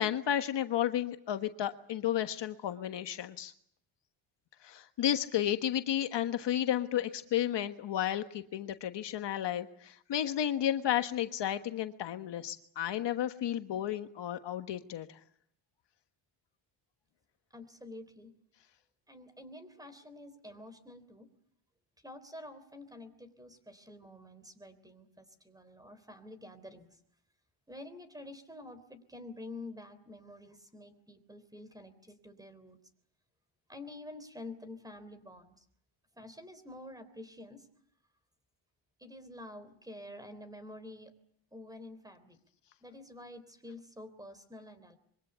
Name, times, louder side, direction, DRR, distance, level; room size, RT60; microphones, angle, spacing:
voice 1, 0.0-3.5 4.6-15.2, left 11 dB, 60° left, 8 dB, 1.4 m, -32 dB
voice 2, 17.5-18.3 19.1-21.3 22.0-26.9 27.7-32.8 33.7-35.7 36.1-37.7 39.0-41.1 41.5-42.4 42.8-45.0, left 2 dB, 10° right, 13 dB, 3.5 m, -48 dB
25.5 x 23.5 x 8.2 m, 0.67 s
cardioid pair, 130°, 47 cm